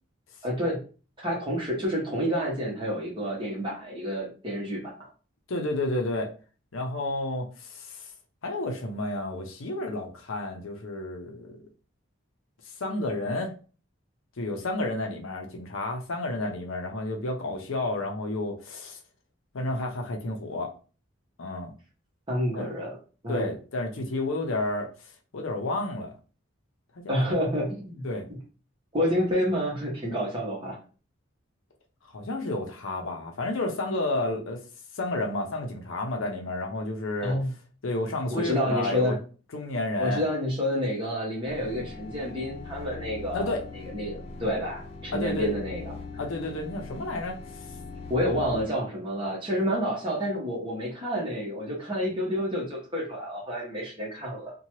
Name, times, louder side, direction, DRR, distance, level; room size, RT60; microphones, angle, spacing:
voice 1, 0.4-0.8 1.2-5.1 22.3-23.0 23.2-23.5 27.1-28.1 28.9-30.8 37.2-37.5 38.3-39.2 40.0-43.5 43.9-46.0 48.1-54.5, equal, 25° right, 1.0 m, -29 dB
voice 2, 5.5-6.3 6.7-8.1 8.4-11.6 12.8-13.5 14.4-19.0 19.5-20.7 21.4-21.7 22.5-22.7 23.3-24.9 25.3-26.1 26.9-27.4 28.0-28.3 32.1-34.6 34.9-37.4 37.8-39.2 39.5-40.2 43.3-43.6 45.1-45.5 46.2-47.4, left 2 dB, 75° left, 0.6 m, -31 dB
sound 1, 41.5-48.6, left 3 dB, 30° left, 0.4 m, -41 dB
2.8 x 2.2 x 3.0 m
head